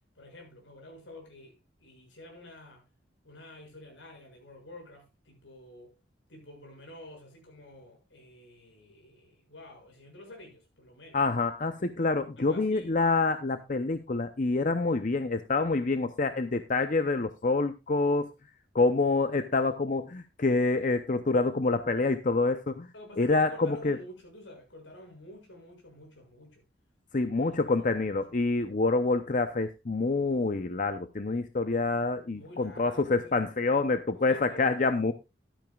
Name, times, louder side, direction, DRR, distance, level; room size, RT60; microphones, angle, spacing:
voice 1, 0.1-2.8 3.2-6.0 6.3-11.2 12.4-12.9 22.9-26.6 27.4-28.0 32.3-33.4 34.2-34.8, left 1 dB, 75° left, 6.5 m, -49 dB
voice 2, 11.1-18.3 18.7-22.9 23.2-24.0 27.1-35.1, left 3 dB, 40° left, 0.6 m, -27 dB
13.5 x 12.5 x 2.4 m
head